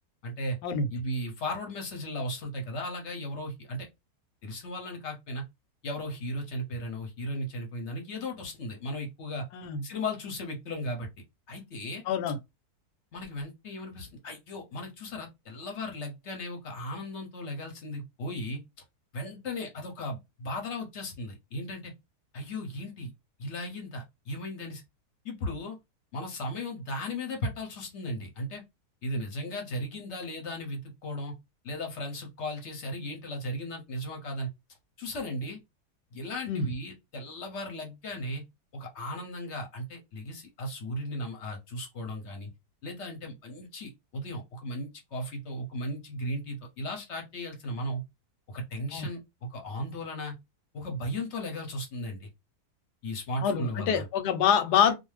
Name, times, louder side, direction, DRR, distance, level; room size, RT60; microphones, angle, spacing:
voice 1, 0.2-0.6 0.9-3.9 4.4-5.4 5.8-9.4 9.8-11.1 11.5-12.0 13.1-18.6 19.1-21.9 22.3-23.1 23.4-24.8 25.2-25.8 26.1-28.6 29.0-31.3 31.6-34.5 35.0-35.6 36.1-38.4 38.7-42.5 42.8-48.0 48.5-49.2 49.5-50.4 50.7-52.3 53.0-54.0, left 1 dB, 55° left, 0.8 m, -36 dB
voice 2, 9.5-9.8 12.1-12.4 36.5-36.7 48.9-49.1 53.4-54.9, left 7 dB, 85° left, 1.2 m, -26 dB
2.5 x 2.3 x 3.1 m
omnidirectional pair, 1.7 m